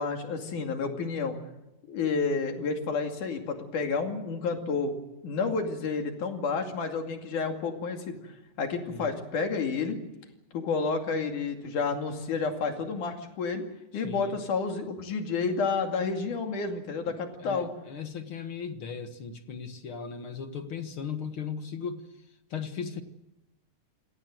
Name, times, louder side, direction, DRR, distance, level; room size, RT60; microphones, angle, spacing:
voice 1, 0.0-1.4 1.9-4.9 5.2-8.2 8.6-10.0 10.5-13.6 13.9-17.7, left 4 dB, 70° left, 4 dB, 3.9 m, -30 dB
voice 2, 13.9-14.4 17.1-22.0 22.5-23.0, left 6 dB, 50° left, 8 dB, 1.9 m, -37 dB
25.5 x 18.5 x 7.9 m, 0.95 s
omnidirectional pair, 3.7 m